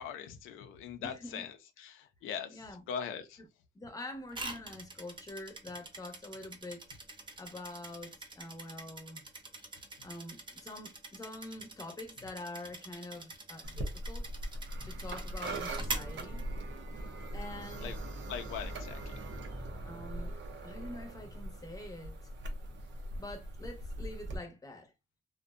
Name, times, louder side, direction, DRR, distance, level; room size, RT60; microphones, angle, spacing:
voice 1, 0.0-3.4 14.8-14.9 17.8-18.0 18.3-19.3, left 7 dB, 85° left, 0.4 m, -41 dB
voice 2, 1.0-1.5 2.5-2.8 3.7-6.8 7.4-9.3 10.0-14.3 14.8-16.4 17.3-18.0 19.8-20.4 20.6-22.1 23.1-24.9, left 2 dB, 15° left, 0.8 m, -45 dB
sound 1, 4.3-17.0, right 2 dB, 25° right, 0.6 m, -45 dB
sound 2, 13.6-24.4, right 1 dB, 65° right, 0.6 m, -40 dB
2.6 x 2.1 x 2.3 m
cardioid pair, 90°, 20 cm